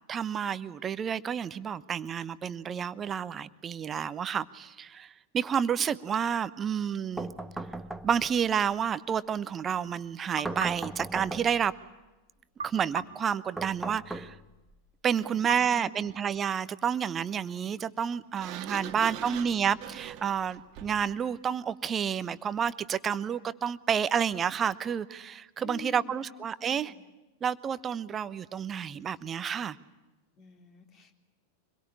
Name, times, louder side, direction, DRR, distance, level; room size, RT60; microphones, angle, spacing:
voice 1, 0.1-7.3 8.0-11.7 12.6-14.4 15.0-26.9 27.4-29.8, right 8 dB, 25° right, 16 dB, 1.0 m, -30 dB
sound 1, 7.2-8.4 10.4-11.7 13.6-14.7, right 2 dB, 5° right, 1.3 m, -38 dB
sound 2, 10.4-12.0 12.6-14.2 15.5-16.8, right 4 dB, 70° right, 2.0 m, -43 dB
voice 2, 15.2-16.0 18.7-19.5 25.6-27.0 30.4-31.1, left 6 dB, 30° left, 5 dB, 3.7 m, -47 dB
Sliding door, 18.4-21.1, right 11 dB, 40° right, 1.7 m, -42 dB
26.0 x 22.0 x 9.8 m, 1.1 s
figure-of-eight pair, 90°, 0 cm